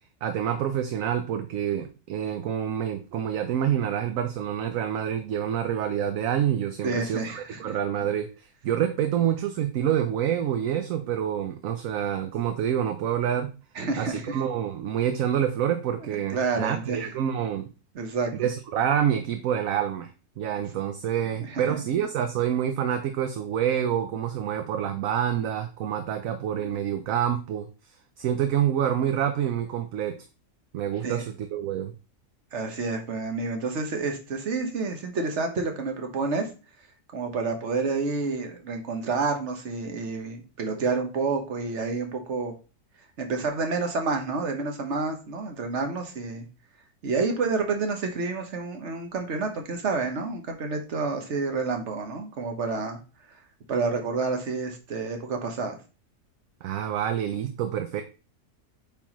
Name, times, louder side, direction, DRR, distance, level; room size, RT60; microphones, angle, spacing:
voice 1, 0.2-8.3 8.6-13.5 14.0-17.7 18.4-20.1 20.4-27.7 28.2-30.2 30.7-31.9 56.6-58.0, right 9 dB, 70° right, 8 dB, 0.9 m, -27 dB
voice 2, 6.8-7.7 13.7-14.4 16.0-17.1 17.9-18.5 21.4-21.8 31.0-31.2 32.5-36.5 37.1-42.5 43.2-46.5 47.0-53.0 53.7-55.8, right 4 dB, 50° right, 4 dB, 1.3 m, -29 dB
8.4 x 3.8 x 3.0 m, 0.33 s
omnidirectional pair, 1.6 m